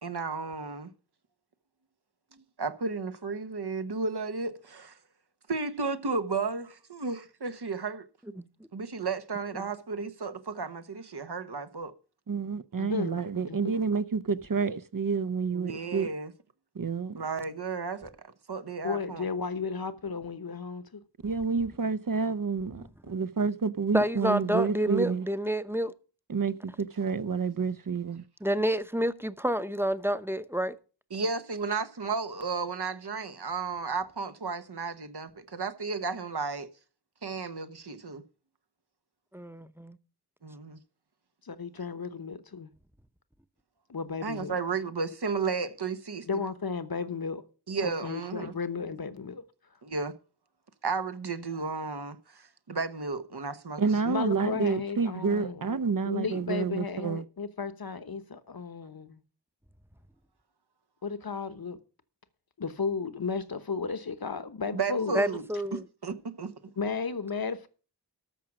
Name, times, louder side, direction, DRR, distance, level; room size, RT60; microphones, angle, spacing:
voice 1, 0.0-0.9 2.6-5.0 5.5-8.1 8.7-11.9 15.5-16.3 17.2-19.2 31.1-36.7 37.2-38.2 40.4-40.8 44.2-46.3 47.7-48.5 49.8-50.1 50.8-53.8 64.7-65.4 65.7-66.5, right 4 dB, 70° right, 1.1 m, -33 dB
voice 2, 12.3-16.1 16.7-17.2 21.2-25.3 26.3-28.2 53.8-57.2, right 5 dB, 55° right, 0.6 m, -29 dB
voice 3, 12.8-13.8 18.8-21.0 41.4-42.7 43.9-44.6 46.3-47.4 47.8-49.4 54.0-55.7 56.0-59.2 61.0-61.8 62.6-65.2 66.8-67.7, left 5 dB, 60° left, 1.1 m, -34 dB
voice 4, 23.9-25.9 28.4-30.8 39.3-40.0 65.1-65.9, equal, 5° right, 0.8 m, -29 dB
13.5 x 6.2 x 6.0 m
wide cardioid pair, 40°, 41 cm